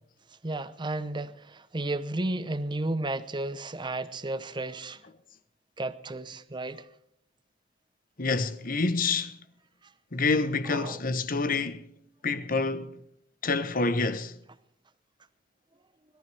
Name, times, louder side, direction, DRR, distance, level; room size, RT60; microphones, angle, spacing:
voice 1, 0.4-5.0 5.8-6.9 9.8-9.9 10.6-11.0, right 2 dB, 25° right, 0.8 m, -33 dB
voice 2, 8.2-9.4 10.1-11.9 12.2-13.0 13.4-14.4, left 3 dB, 45° left, 1.0 m, -27 dB
21.0 x 14.0 x 3.4 m
head